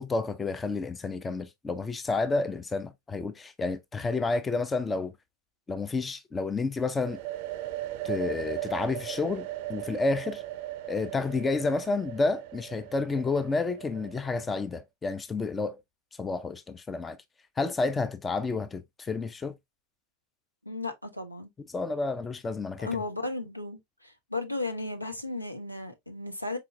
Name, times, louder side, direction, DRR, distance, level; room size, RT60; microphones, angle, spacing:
voice 1, 0.0-5.1 5.7-7.2 8.0-10.4 10.8-15.8 16.2-17.2 17.6-19.6 21.7-22.9, left 3 dB, 15° left, 0.4 m, -30 dB
sound 1, 7.0-14.6, right 14 dB, 45° right, 0.5 m, -38 dB
voice 2, 20.6-21.5 22.8-26.6, left 2 dB, 85° left, 0.8 m, -35 dB
4.3 x 3.8 x 2.5 m
figure-of-eight pair, 90°, 0 cm